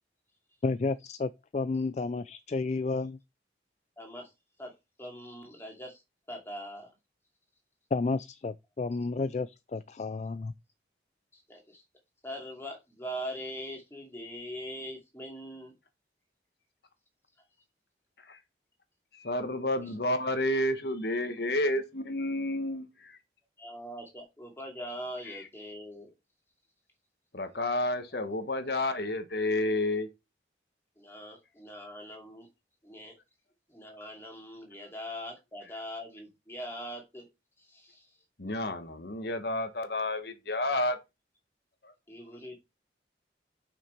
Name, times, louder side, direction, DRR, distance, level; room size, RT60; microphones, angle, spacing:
voice 1, 0.6-3.2 7.9-10.5, left 3 dB, 40° left, 0.3 m, -31 dB
voice 2, 4.0-4.3 4.6-4.7 5.0-6.0 6.3-6.9 11.3-11.8 12.2-15.7 19.8-20.1 23.6-26.1 31.0-32.5 32.8-33.1 33.7-37.3 37.6-38.2 42.1-42.6, equal, 15° left, 2.6 m, -42 dB
voice 3, 19.1-23.2 25.3-25.4 27.3-30.1 38.4-41.0 41.8-41.9, left 1 dB, 65° left, 1.3 m, -30 dB
6.8 x 6.0 x 4.5 m
head